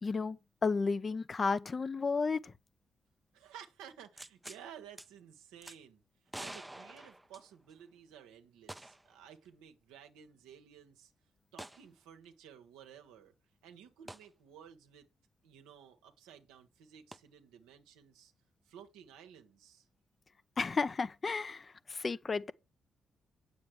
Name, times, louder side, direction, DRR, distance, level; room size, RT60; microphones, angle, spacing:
voice 1, 0.0-2.5 20.6-22.5, left 4 dB, 40° left, 0.7 m, -33 dB
voice 2, 3.3-6.0 6.4-11.1 11.5-13.3 13.6-15.1 15.4-18.3 18.6-19.8, right 9 dB, 80° right, 1.2 m, -54 dB
sound 1, 4.2-4.6 5.0-5.1 5.6-5.8 6.3-7.8 8.7-9.1 9.4-9.5 11.6-11.8 14.1-14.3 17.1-17.2, right 1 dB, 10° right, 0.7 m, -47 dB
8.6 x 7.2 x 4.7 m
hypercardioid pair, 45°, 0 cm